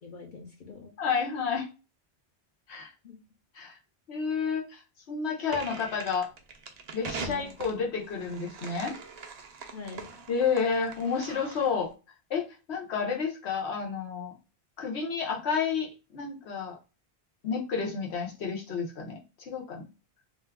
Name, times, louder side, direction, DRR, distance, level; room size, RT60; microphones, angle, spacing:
voice 1, 0.0-0.9 3.0-3.2 7.1-7.7 9.7-10.2, left 4 dB, 55° left, 0 dB, 0.7 m, -43 dB
voice 2, 1.0-1.7 2.7-2.9 3.5-3.8 4.1-4.8 5.1-6.3 6.9-8.9 10.3-11.9 12.3-14.3 14.8-16.8 17.4-19.8, left 6 dB, 85° left, 0 dB, 1.1 m, -30 dB
sound 1, 5.5-11.8, right 5 dB, 55° right, 0.5 m, -42 dB
2.7 x 2.2 x 3.5 m, 0.31 s
omnidirectional pair, 1.1 m